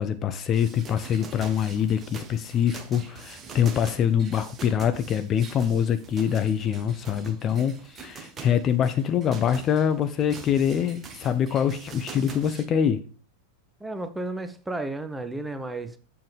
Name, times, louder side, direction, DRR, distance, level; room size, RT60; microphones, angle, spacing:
voice 1, 0.0-13.0, left 8 dB, 30° left, 0.5 m, -24 dB
sound 1, 0.5-12.7, right 5 dB, 25° right, 1.1 m, -44 dB
voice 2, 13.8-16.0, right 2 dB, 5° right, 0.8 m, -33 dB
7.4 x 7.0 x 3.3 m
figure-of-eight pair, 90°, 0 cm